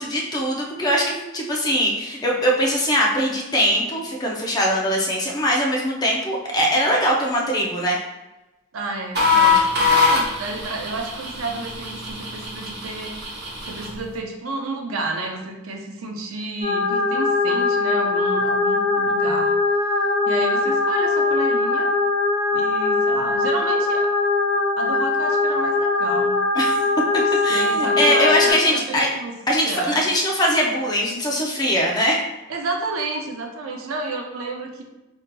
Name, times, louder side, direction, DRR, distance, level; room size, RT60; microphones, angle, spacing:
voice 1, 0.0-8.0 26.5-26.8 27.4-29.1 29.5-32.2, equal, 20° left, -2 dB, 0.5 m, -21 dB
voice 2, 8.7-13.1 13.6-19.5 19.9-21.9 22.5-24.1 24.8-26.4 27.2-30.0 32.5-34.8, right 3 dB, 85° right, 2 dB, 0.5 m, -31 dB
sound 1, 9.1-14.0, left 4 dB, 50° right, 0.8 m, -22 dB
sound 2, 16.6-28.5, left 3 dB, 25° right, 1.1 m, -21 dB
3.9 x 2.7 x 2.2 m, 1.0 s
head